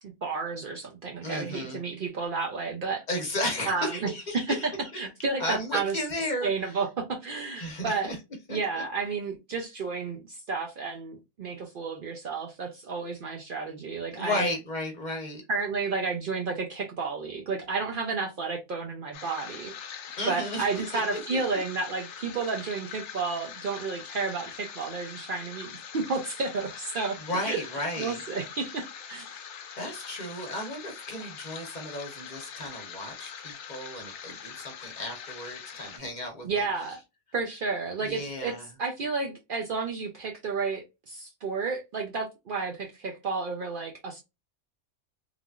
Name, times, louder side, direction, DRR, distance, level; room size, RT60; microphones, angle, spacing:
voice 1, 0.2-3.0 3.7-6.0 6.4-8.1 8.5-14.5 15.5-19.7 20.3-27.6 28.0-29.3 36.4-37.0 37.3-38.5 38.8-44.2, right 4 dB, 60° right, 0.6 m, -31 dB
voice 2, 1.2-1.8 3.1-4.7 5.4-6.7 7.6-8.2 8.5-8.8 14.1-15.4 20.2-21.2 21.5-21.6 27.2-28.2 29.8-36.7 38.0-38.7, left 1 dB, 45° left, 0.9 m, -34 dB
sound 1, 19.1-36.0, left 7 dB, 75° left, 0.9 m, -43 dB
3.2 x 2.4 x 2.3 m
omnidirectional pair, 1.2 m